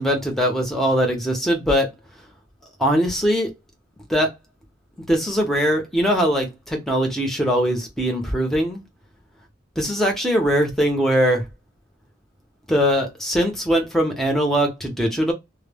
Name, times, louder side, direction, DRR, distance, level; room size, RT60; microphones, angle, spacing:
voice 1, 0.0-1.9 2.8-3.5 4.1-4.3 5.1-8.8 9.8-11.4 12.7-15.3, equal, ahead, 0.7 m, -21 dB
2.2 x 2.1 x 3.3 m
head